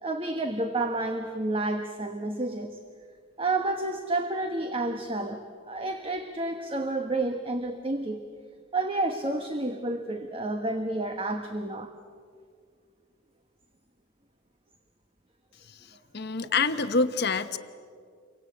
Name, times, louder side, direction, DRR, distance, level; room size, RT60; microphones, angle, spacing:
voice 1, 0.0-2.7 3.4-8.2 8.7-11.9, right 2 dB, 25° right, 6 dB, 1.2 m, -30 dB
voice 2, 16.1-17.6, left 4 dB, 50° left, 10 dB, 1.1 m, -26 dB
29.0 x 24.0 x 8.6 m, 2.1 s
head